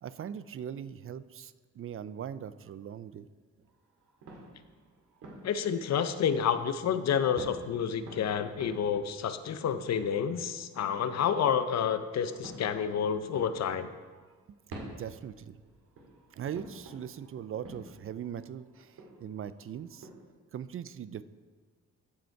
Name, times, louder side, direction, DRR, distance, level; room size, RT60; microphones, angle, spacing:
voice 1, 0.0-3.3 4.4-4.5 14.5-14.6 14.9-15.6 16.3-20.1 20.5-21.2, right 9 dB, 45° right, 15 dB, 0.4 m, -40 dB
sound 1, 3.6-6.7 7.0-11.0 12.1-20.1, right 2 dB, 85° right, 2.2 m, -50 dB
voice 2, 5.4-13.9, left 7 dB, 60° left, 11 dB, 0.6 m, -29 dB
14.0 x 5.1 x 4.6 m, 1.5 s
cardioid pair, 80°, 30 cm